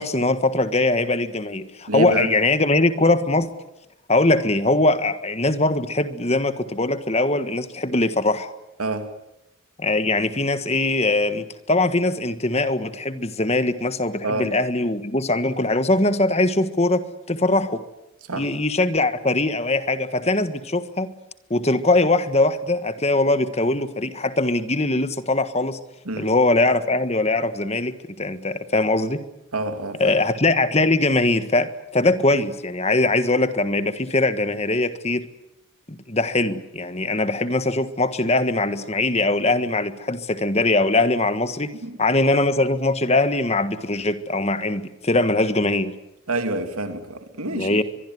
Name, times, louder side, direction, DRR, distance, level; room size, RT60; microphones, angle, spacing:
voice 1, 0.0-3.5 4.1-8.5 9.8-17.8 18.3-21.1 21.5-25.8 26.2-29.2 30.0-35.2 35.9-41.7 42.0-45.9 47.4-47.8, left 2 dB, 30° left, 11 dB, 1.5 m, -21 dB
voice 2, 1.9-2.3 8.8-9.1 14.2-14.5 18.3-18.5 26.1-26.3 29.5-30.0 41.8-42.0 46.3-47.8, right 2 dB, 90° right, 7 dB, 2.6 m, -27 dB
23.5 x 23.0 x 9.5 m, 0.90 s
head